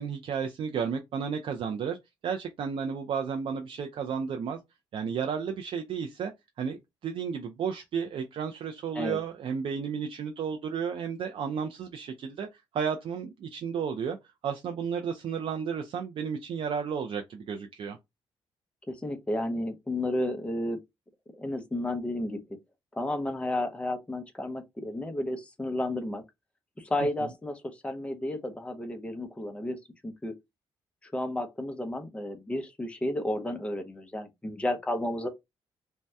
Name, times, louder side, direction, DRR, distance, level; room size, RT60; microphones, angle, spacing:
voice 1, 0.0-2.0 2.2-4.6 4.9-6.3 6.6-14.2 14.4-18.0 27.2-27.3, right 6 dB, 60° right, 0.4 m, -33 dB
voice 2, 18.9-20.8 21.3-22.6 22.9-26.2 26.8-30.3 31.0-35.3, left 1 dB, 10° left, 0.6 m, -32 dB
2.7 x 2.1 x 3.3 m
cardioid pair, 90°, 10 cm